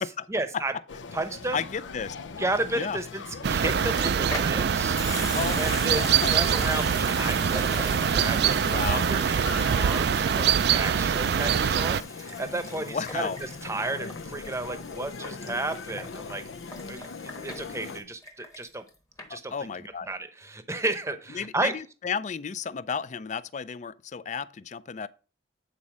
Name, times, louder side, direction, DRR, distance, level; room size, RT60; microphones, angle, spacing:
voice 1, 0.3-0.7 1.1-1.6 2.4-3.2 3.5-5.0 5.5-13.3 13.6-18.8 19.3-19.5 20.1-21.7, right 2 dB, 15° right, 0.8 m, -33 dB
sound 1, 0.9-18.0, left 4 dB, 80° left, 0.6 m, -41 dB
voice 2, 1.5-2.2 2.8-3.0 5.3-6.4 8.6-9.1 12.8-13.4 17.7-17.8 19.3-20.1 21.3-25.1, left 6 dB, 40° left, 0.4 m, -33 dB
sound 2, 3.4-12.0, right 7 dB, 60° right, 0.4 m, -24 dB
Water tap faucet / Sink (filling or washing) / Liquid, 4.3-18.9 19.2-19.3, left 3 dB, 20° left, 1.1 m, -41 dB
9.0 x 4.2 x 6.0 m
head